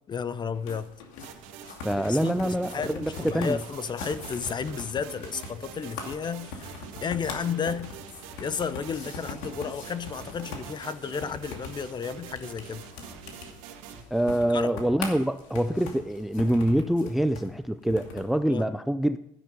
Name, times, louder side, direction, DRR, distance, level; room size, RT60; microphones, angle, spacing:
voice 1, 0.1-0.9 1.9-6.6 7.0-7.9 8.4-12.8 14.4-14.8 18.5-18.7, left 6 dB, 25° left, 0.8 m, -32 dB
sound 1, 0.5-18.4, left 4 dB, 80° left, 2.6 m, -42 dB
sound 2, 0.6-7.3 7.7-14.6 15.0-17.6, left 3 dB, 55° left, 4.5 m, -52 dB
sound 3, 1.2-14.0, right 9 dB, 80° right, 1.8 m, -46 dB
voice 2, 1.8-3.6 14.1-19.2, equal, ahead, 0.4 m, -25 dB
13.0 x 10.0 x 5.4 m
supercardioid pair, 110°, 17 cm